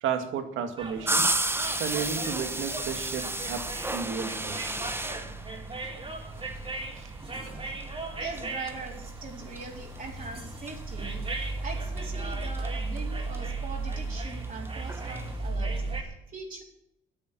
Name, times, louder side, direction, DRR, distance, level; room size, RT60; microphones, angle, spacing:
voice 1, 0.0-1.3 1.7-4.6 6.9-7.1, right 7 dB, 85° right, 7 dB, 2.0 m, -33 dB
sound 1, 0.8-16.0, right 3 dB, 30° right, 3.7 m, -36 dB
sound 2, 1.1-15.4, right 2 dB, 10° right, 1.1 m, -35 dB
voice 2, 8.2-16.6, right 4 dB, 45° right, -2 dB, 4.2 m, -41 dB
10.0 x 9.3 x 9.5 m, 0.80 s
cardioid pair, 90°, 20 cm